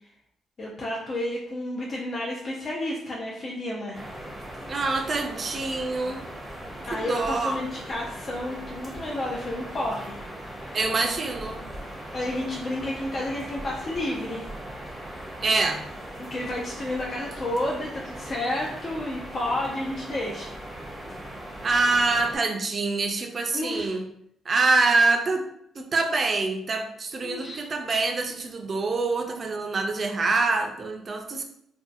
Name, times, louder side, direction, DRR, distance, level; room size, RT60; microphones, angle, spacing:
voice 1, 0.6-4.0 6.9-10.8 12.1-14.5 16.2-20.6 23.5-24.0 27.2-27.7, left 1 dB, 45° left, -3 dB, 0.5 m, -31 dB
sound 1, 3.9-22.4, right 1 dB, ahead, 0.7 m, -39 dB
voice 2, 4.7-6.2 6.9-7.6 10.7-11.6 15.4-15.8 21.6-24.0 24.5-25.5 25.8-31.4, right 3 dB, 40° right, 4 dB, 0.4 m, -25 dB
2.6 x 2.3 x 2.4 m, 0.74 s
cardioid pair, 90°, 0 cm